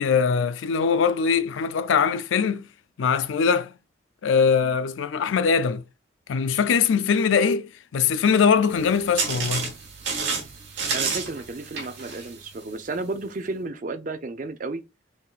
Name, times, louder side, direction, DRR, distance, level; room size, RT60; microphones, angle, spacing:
voice 1, 0.0-2.7 3.0-3.7 4.2-5.8 6.3-9.7, left 6 dB, 75° left, 0.4 m, -22 dB
sound 1, 8.7-13.1, right 5 dB, 65° right, 1.1 m, -30 dB
voice 2, 10.9-14.8, right 3 dB, 40° right, 0.5 m, -32 dB
3.7 x 3.7 x 2.4 m
head